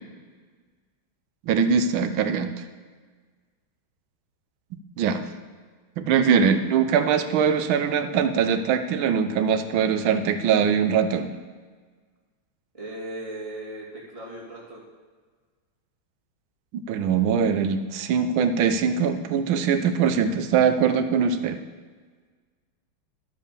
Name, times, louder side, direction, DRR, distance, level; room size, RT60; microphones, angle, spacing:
voice 1, 1.5-2.6 5.0-5.2 6.0-11.3 16.7-21.6, right 7 dB, 80° right, 8 dB, 1.5 m, -22 dB
voice 2, 12.7-14.8, right 1 dB, 15° right, -5 dB, 2.5 m, -37 dB
12.0 x 5.4 x 6.8 m, 1.5 s
omnidirectional pair, 2.2 m